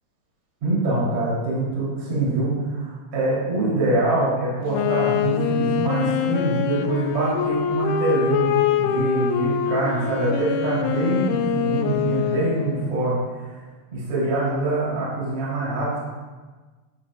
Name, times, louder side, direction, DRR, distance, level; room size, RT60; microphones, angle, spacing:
voice 1, 0.6-13.6 13.9-16.0, right 2 dB, 35° right, -7 dB, 4.5 m, -24 dB
Wind instrument woodwind instrument, 4.7-13.0, left 8 dB, 85° left, 2.9 m, -24 dB
18.0 x 8.4 x 2.5 m, 1.3 s
omnidirectional pair, 5.4 m